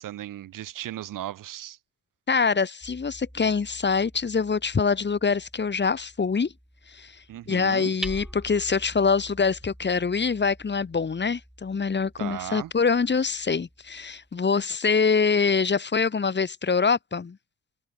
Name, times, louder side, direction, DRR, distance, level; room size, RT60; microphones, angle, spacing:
voice 1, 0.0-1.8 7.3-7.9 12.2-12.7, right 13 dB, 75° right, 1.6 m, -36 dB
voice 2, 2.3-6.5 6.9-7.1 7.5-17.4, left 5 dB, 35° left, 1.5 m, -24 dB
Hammer, 2.8-14.5, equal, ahead, 4.3 m, -46 dB
supercardioid pair, 60°, 32 cm